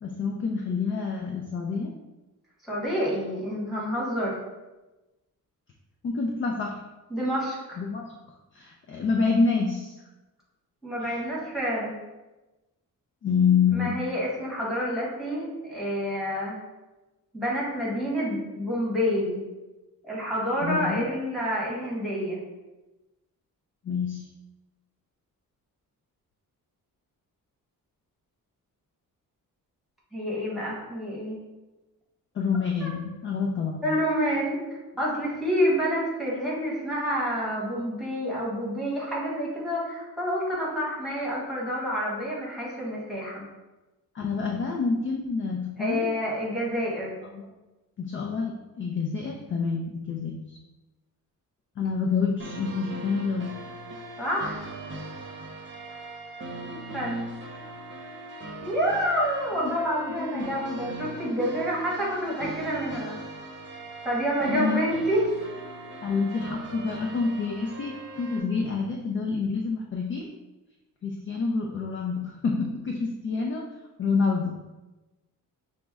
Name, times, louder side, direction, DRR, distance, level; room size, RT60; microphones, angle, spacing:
voice 1, 0.0-1.9 6.0-6.8 7.8-8.1 8.5-9.9 11.0-11.2 13.2-14.0 20.6-21.1 23.8-24.3 32.3-33.9 44.1-46.1 47.3-47.5 48.0-50.6 51.8-53.5 59.6-59.8 60.2-60.5 64.5-64.9 66.0-70.3 71.0-73.7 74.0-74.5, left 5 dB, 35° left, 0 dB, 0.4 m, -27 dB
voice 2, 2.6-4.4 7.1-7.8 10.8-11.9 13.7-16.6 17.3-19.4 20.0-22.4 30.1-31.4 32.8-32.9 33.8-34.6 35.0-43.4 45.8-47.1 54.2-54.7 56.6-57.4 58.6-63.2 64.0-65.3, equal, ahead, -6 dB, 1.2 m, -28 dB
sound 1, 52.4-68.4, right 2 dB, 35° right, 0.8 m, -40 dB
6.1 x 2.1 x 3.4 m, 1.1 s
wide cardioid pair, 150°, 35 cm